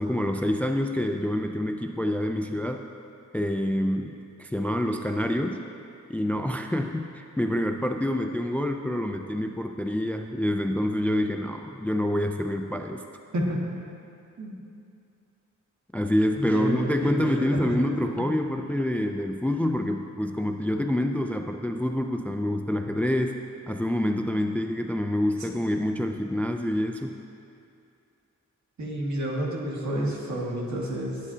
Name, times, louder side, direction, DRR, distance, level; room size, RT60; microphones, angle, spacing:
voice 1, 0.0-2.8 3.3-5.6 6.1-13.0 15.9-27.2, left 1 dB, 5° left, 5 dB, 0.4 m, -27 dB
voice 2, 13.3-13.7 14.4-14.6 16.3-17.8 18.2-18.3 28.8-31.2, right 1 dB, 60° right, -3 dB, 2.1 m, -30 dB
19.0 x 8.3 x 2.8 m, 2.5 s
wide cardioid pair, 95°, 31 cm